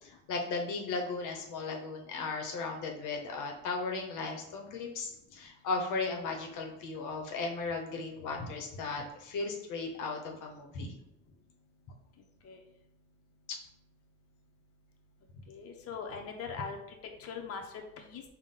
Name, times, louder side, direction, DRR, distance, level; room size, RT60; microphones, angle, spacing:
voice 1, 0.0-10.9 13.5-13.6, left 3 dB, 85° left, 2 dB, 0.7 m, -36 dB
voice 2, 15.5-16.8 17.2-18.2, left 5 dB, 50° left, 2 dB, 0.6 m, -41 dB
4.0 x 2.2 x 3.6 m, 0.80 s
cardioid pair, 90°, 30 cm